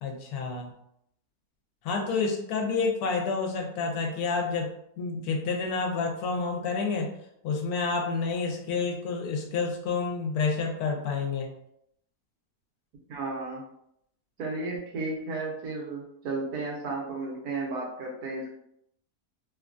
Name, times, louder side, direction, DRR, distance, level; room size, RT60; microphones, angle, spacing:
voice 1, 0.0-0.7 1.8-7.2 7.4-11.5, left 4 dB, 80° left, 2 dB, 1.1 m, -29 dB
voice 2, 13.1-13.6 14.4-18.5, right 3 dB, 90° right, -2 dB, 1.3 m, -33 dB
3.1 x 2.3 x 2.4 m, 0.74 s
omnidirectional pair, 1.6 m